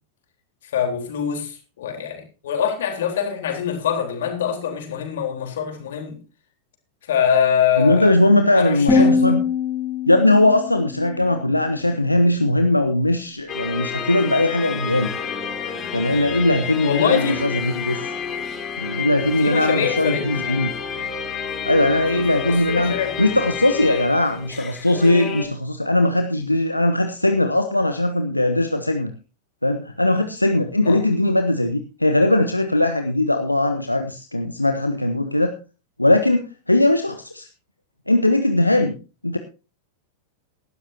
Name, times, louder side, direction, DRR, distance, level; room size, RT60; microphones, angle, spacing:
voice 1, 0.7-6.2 7.1-8.1 8.5-9.4 16.8-17.5 19.4-20.7 22.1-23.1 30.8-31.0, left 8 dB, 60° left, 4 dB, 3.9 m, -24 dB
voice 2, 7.8-9.4 10.1-15.1 15.9-18.1 18.8-20.7 21.6-29.1 29.6-35.5 36.0-37.5 38.1-39.0 39.2-39.4, left 1 dB, 85° left, 7 dB, 0.9 m, -19 dB
sound 1, 8.9-11.9, left 3 dB, 10° left, 4.5 m, -23 dB
sound 2, 13.5-25.5, left 6 dB, 25° left, 3.6 m, -30 dB
18.0 x 12.5 x 2.8 m, 0.32 s
figure-of-eight pair, 90°, 0 cm